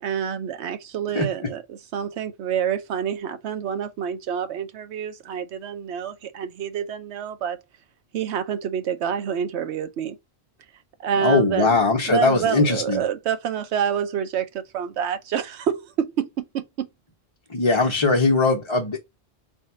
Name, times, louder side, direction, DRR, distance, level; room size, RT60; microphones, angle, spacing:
voice 1, 0.0-7.6 8.1-10.2 11.0-11.8 12.1-16.9, right 8 dB, 85° right, 1.0 m, -27 dB
voice 2, 11.2-13.0 17.5-19.0, left 3 dB, 30° left, 0.8 m, -20 dB
3.5 x 2.7 x 4.2 m
omnidirectional pair, 1.1 m